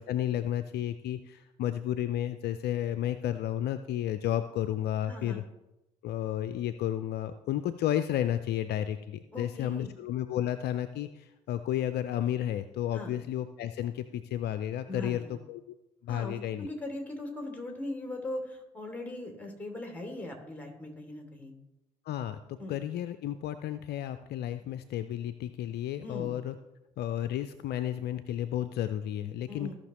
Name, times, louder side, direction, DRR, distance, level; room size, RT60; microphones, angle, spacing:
voice 1, 0.0-5.4 6.0-15.7 16.0-16.7 22.1-26.5 27.0-29.7, left 11 dB, 55° left, 12 dB, 0.5 m, -32 dB
voice 2, 5.1-5.5 9.3-9.9 12.9-13.1 14.9-15.3 16.1-21.5 22.6-22.7 26.0-26.3 29.5-29.7, left 1 dB, 10° left, 1 dB, 2.9 m, -39 dB
16.0 x 5.9 x 3.1 m, 0.96 s
hypercardioid pair, 50°, 20 cm